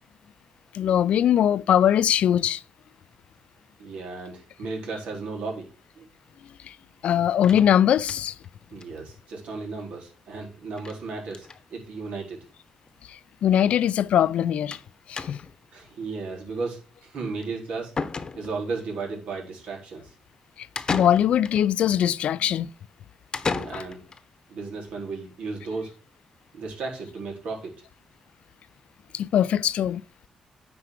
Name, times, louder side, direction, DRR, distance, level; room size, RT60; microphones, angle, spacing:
voice 1, 0.7-2.6 6.6-6.8 7.0-8.4 13.1-14.8 15.1-15.4 20.6-22.7 23.7-23.8 29.1-30.0, left 10 dB, 80° left, 0.5 m, -21 dB
voice 2, 3.8-5.7 6.0-6.1 8.7-12.4 15.7-17.9 18.4-20.1 23.4-24.0 24.5-25.9 26.5-27.7, right 4 dB, 85° right, 4.2 m, -34 dB
sound 1, 7.4-8.5 8.8-8.9 9.2-9.3 9.5-9.6 10.8-11.0 11.3-11.6 12.5-12.6 12.9-13.0 14.7-14.9 15.2-15.6 17.4-17.5 18.0-18.7 20.8-21.6 23.3-24.2, left 4 dB, 40° left, 1.0 m, -33 dB
9.5 x 4.7 x 6.5 m
cardioid pair, 95°, 2 cm